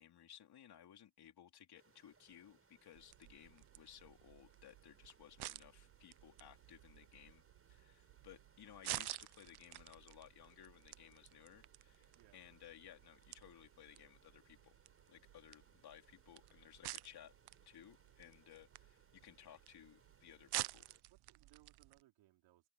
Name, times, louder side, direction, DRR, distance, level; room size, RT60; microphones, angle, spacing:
voice 1, 0.0-7.4 7.7-14.8 15.1-17.3 17.6-20.8, left 10 dB, 55° left, 4.0 m, -60 dB
sound 1, 1.8-21.0, right 5 dB, 30° right, 7.0 m, -71 dB
sound 2, 2.9-22.0, right 17 dB, 60° right, 0.7 m, -51 dB
voice 2, 16.4-16.8 21.1-22.7, right 16 dB, 80° right, 4.1 m, -69 dB
open air
cardioid pair, 90°, 46 cm